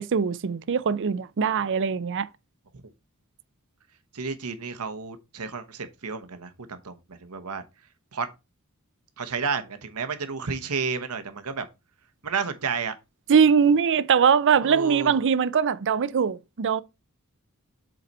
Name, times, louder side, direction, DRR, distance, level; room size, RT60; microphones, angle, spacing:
voice 1, 0.0-2.3 13.3-16.8, right 6 dB, 55° right, 0.5 m, -21 dB
voice 2, 4.1-6.9 7.2-7.6 8.1-8.3 9.2-11.7 12.2-12.9 14.6-15.1, right 5 dB, 85° right, 1.1 m, -31 dB
7.7 x 4.0 x 4.1 m
head